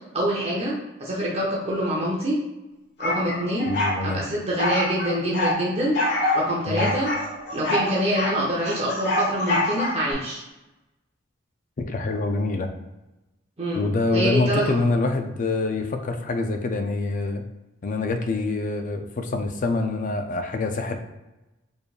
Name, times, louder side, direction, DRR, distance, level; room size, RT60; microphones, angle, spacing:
voice 1, 0.1-2.4 3.0-3.7 4.0-5.9 6.3-7.1 7.5-10.4 13.6-14.6, equal, 30° right, -4 dB, 0.7 m, -25 dB
sound 1, 3.0-4.0 4.6-5.6 5.9-6.4 6.8-8.4 8.6-10.1, left 1 dB, 60° left, 1.3 m, -25 dB
voice 2, 3.7-4.2 6.7-6.9 11.8-12.7 13.7-17.4 17.8-21.0, left 3 dB, 40° left, 6 dB, 0.4 m, -25 dB
4.4 x 3.3 x 2.4 m, 1.0 s
head